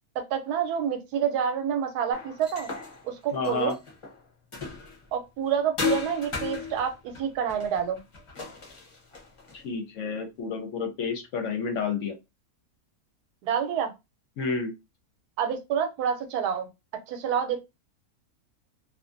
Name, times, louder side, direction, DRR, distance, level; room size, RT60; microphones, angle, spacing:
voice 1, 0.2-2.7 3.0-3.7 5.1-8.0 13.4-13.9 15.4-16.7 17.1-17.6, right 8 dB, 90° right, 1.2 m, -28 dB
sound 1, 2.1-5.1 5.8-9.6, left 5 dB, 30° left, 0.5 m, -35 dB
voice 2, 3.3-3.8 9.5-12.2 14.4-14.7, left 5 dB, 65° left, 0.9 m, -30 dB
2.5 x 2.4 x 2.4 m
omnidirectional pair, 1.6 m